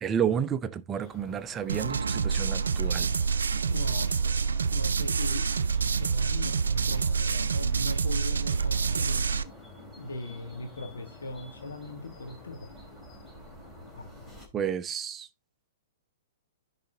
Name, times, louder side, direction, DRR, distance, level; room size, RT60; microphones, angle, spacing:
voice 1, 0.0-3.1 14.5-15.3, right 8 dB, 20° right, 0.6 m, -31 dB
sound 1, 1.0-14.5, left 1 dB, 10° left, 3.1 m, -49 dB
sound 2, 1.7-9.4, right 5 dB, 70° right, 0.5 m, -27 dB
voice 2, 3.7-5.5 6.0-9.3 10.0-12.7 14.0-14.1, left 2 dB, 70° left, 1.5 m, -39 dB
10.5 x 4.1 x 3.8 m
figure-of-eight pair, 110°, 0 cm